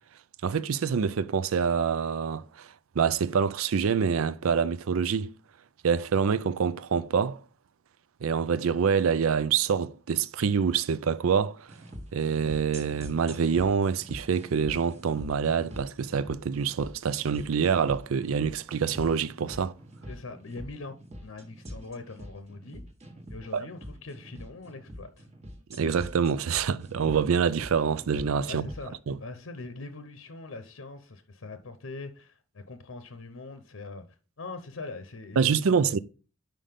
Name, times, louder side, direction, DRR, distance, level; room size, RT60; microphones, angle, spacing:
voice 1, 0.4-2.7 3.0-5.3 5.8-7.4 8.2-11.7 12.1-19.7 23.5-23.7 25.7-28.7 29.1-29.2 35.4-36.0, right 6 dB, 80° right, 0.4 m, -26 dB
sound 1, 11.7-28.9, equal, 30° right, 1.2 m, -44 dB
voice 2, 20.1-22.8 23.3-25.3 28.4-34.0 34.4-35.8, left 3 dB, 75° left, 0.8 m, -42 dB
5.7 x 5.1 x 5.1 m
head